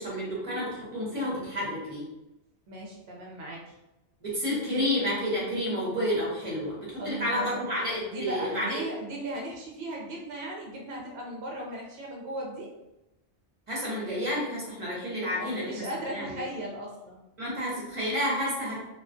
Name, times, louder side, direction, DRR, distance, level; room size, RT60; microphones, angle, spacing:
voice 1, 0.0-2.1 4.2-8.8 13.7-16.4 17.4-18.8, equal, 30° right, -6 dB, 0.9 m, -30 dB
voice 2, 2.7-3.8 7.0-7.6 8.0-12.7 15.4-17.2, right 1 dB, 65° right, -2 dB, 0.8 m, -37 dB
2.3 x 2.3 x 2.5 m, 0.96 s
omnidirectional pair, 1.2 m